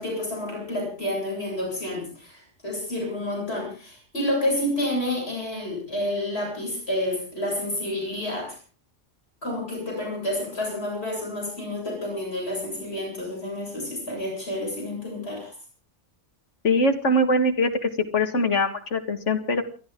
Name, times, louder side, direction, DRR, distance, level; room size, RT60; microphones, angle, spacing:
voice 1, 0.0-8.6 9.4-15.5, left 1 dB, 60° left, -2 dB, 8.1 m, -29 dB
voice 2, 16.6-19.6, left 1 dB, 80° left, 6 dB, 2.1 m, -22 dB
29.0 x 12.0 x 3.8 m, 0.38 s
omnidirectional pair, 1.2 m